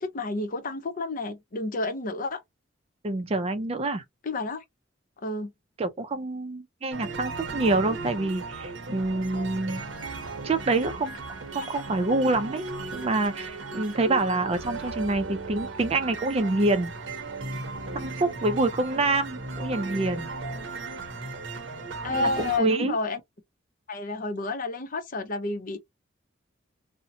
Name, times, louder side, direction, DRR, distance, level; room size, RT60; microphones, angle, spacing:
voice 1, 0.0-2.4 4.2-4.6 5.2-5.5 22.0-23.2 23.9-25.8, left 3 dB, 45° left, 0.6 m, -30 dB
voice 2, 3.0-4.0 5.8-9.8 10.4-11.2 11.5-12.6 12.9-16.9 17.9-20.3 22.1-23.0, right 2 dB, 30° right, 0.4 m, -26 dB
sound 1, 6.9-22.6, right 3 dB, 70° right, 0.7 m, -36 dB
2.7 x 2.1 x 2.6 m
head